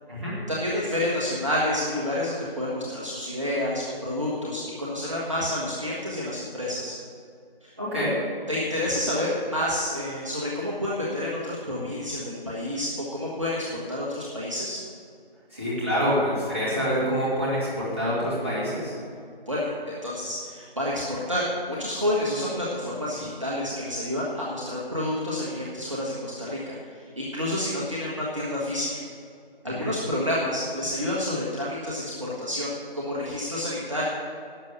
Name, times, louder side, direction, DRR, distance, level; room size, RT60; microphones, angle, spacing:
voice 1, 0.5-6.9 7.6-7.7 8.5-14.8 19.5-28.9 29.6-34.0, left 1 dB, 30° right, -6 dB, 1.3 m, -29 dB
voice 2, 7.8-8.2 15.5-18.9 29.6-29.9, equal, 15° right, -10 dB, 2.1 m, -26 dB
11.5 x 6.8 x 6.8 m, 2.4 s
figure-of-eight pair, 170°, 30 cm